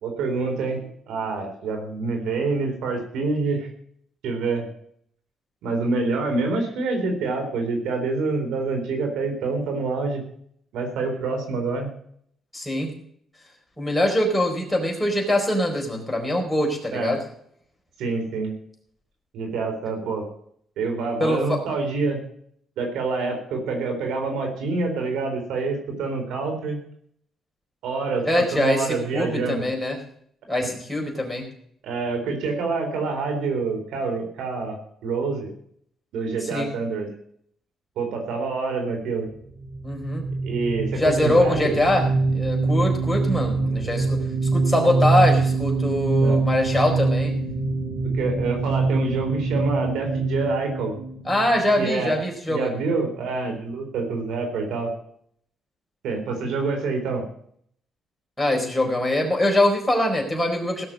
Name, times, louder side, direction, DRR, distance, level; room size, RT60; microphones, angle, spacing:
voice 1, 0.0-3.7 4.2-4.7 5.6-10.2 10.7-11.9 16.9-17.2 18.0-18.6 19.3-20.3 20.8-22.2 22.8-26.8 27.8-29.7 30.6-30.7 31.8-35.5 36.1-37.1 38.0-39.3 40.4-41.7 46.2-46.4 48.1-51.0 51.8-52.1 52.5-54.9 56.0-57.2, right 3 dB, 85° right, 4 dB, 3.9 m, -26 dB
voice 2, 12.5-12.9 13.8-17.2 21.2-21.6 28.2-30.0 30.5-31.5 36.5-36.7 39.8-40.3 41.0-42.1 42.3-44.2 44.5-47.4 51.3-52.7 58.4-60.8, left 1 dB, 5° left, 1 dB, 4.5 m, -23 dB
sound 1, 39.6-52.0, right 3 dB, 35° right, 3.9 m, -24 dB
17.0 x 6.6 x 7.5 m, 0.66 s
cardioid pair, 90°, 0 cm